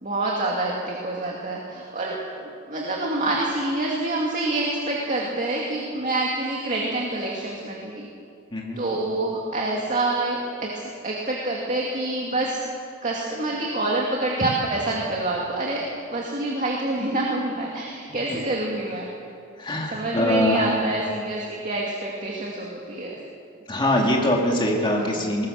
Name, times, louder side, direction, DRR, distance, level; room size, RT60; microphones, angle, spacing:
voice 1, 0.0-8.1 8.8-12.6 13.0-19.1 19.9-23.2 25.0-25.2, right 2 dB, 35° right, -2 dB, 2.4 m, -27 dB
voice 2, 8.5-8.8 18.3-18.4 19.6-20.6 23.7-25.5, left 1 dB, 20° left, -1 dB, 2.4 m, -23 dB
21.0 x 20.0 x 6.6 m, 2.3 s
head